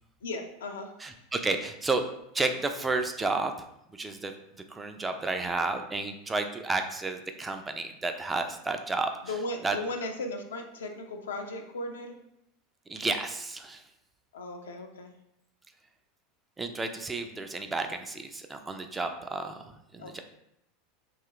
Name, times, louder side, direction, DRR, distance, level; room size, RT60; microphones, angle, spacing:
voice 1, 0.2-0.9 9.3-12.2 14.3-15.1 20.0-20.2, left 2 dB, 80° left, 4 dB, 0.4 m, -36 dB
voice 2, 1.0-2.1 2.3-3.5 3.9-4.3 4.7-9.1 9.6-9.8 12.9-13.8 16.6-20.2, right 3 dB, 15° right, 6 dB, 0.3 m, -31 dB
2.9 x 2.4 x 2.9 m, 0.79 s
hypercardioid pair, 85°, 0 cm